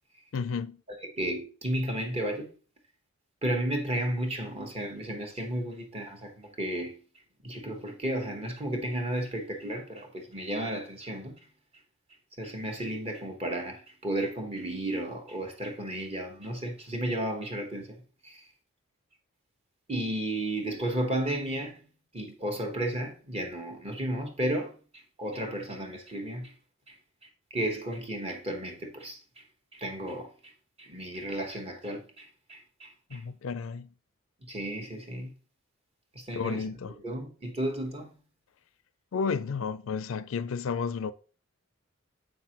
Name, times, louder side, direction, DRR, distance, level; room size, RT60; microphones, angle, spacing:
voice 1, 0.3-0.8 33.1-33.9 36.3-36.9 39.1-41.1, left 5 dB, 65° left, 0.4 m, -32 dB
voice 2, 1.2-2.5 3.4-7.0 7.4-11.4 12.4-18.0 18.2-18.4 19.9-21.8 22.1-26.5 26.9-27.0 27.5-29.4 29.7-30.5 30.8-33.2 34.4-35.3 36.1-36.7 37.0-38.1, right 1 dB, 30° right, 1.2 m, -33 dB
7.6 x 5.8 x 2.9 m
head